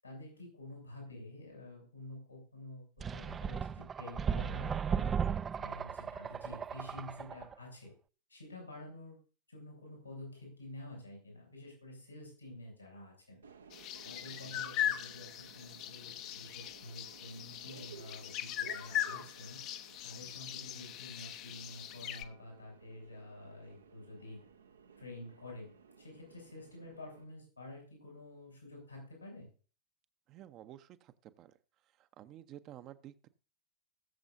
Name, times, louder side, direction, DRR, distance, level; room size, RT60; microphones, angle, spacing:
voice 1, 0.0-5.1 5.4-7.9 8.3-9.2 9.5-13.4 14.0-19.6 20.0-24.4 25.0-29.5, left 1 dB, 85° left, -1 dB, 6.8 m, -49 dB
sound 1, 3.0-7.6, right 7 dB, 20° right, 0.4 m, -36 dB
Subway metro underground, 13.4-27.2, right 7 dB, 70° right, 0.9 m, -58 dB
sound 2, 13.7-22.2, left 11 dB, 40° left, 0.8 m, -40 dB
voice 2, 30.3-31.5 32.0-33.3, right 12 dB, 35° right, 11 dB, 0.8 m, -52 dB
20.0 x 7.2 x 2.7 m, 0.37 s
figure-of-eight pair, 90°, 0 cm